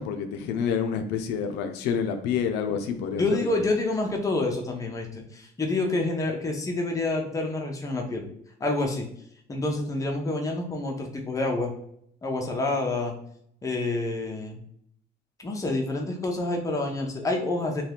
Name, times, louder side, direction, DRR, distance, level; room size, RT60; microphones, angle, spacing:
voice 1, 0.0-3.7, left 7 dB, 90° left, 7 dB, 0.4 m, -28 dB
voice 2, 3.2-8.3 8.6-9.1 9.5-11.7 12.2-13.1 13.6-14.6 15.4-17.8, left 2 dB, 20° left, 1 dB, 0.6 m, -28 dB
2.7 x 2.3 x 3.3 m, 0.70 s
cardioid pair, 110°, 17 cm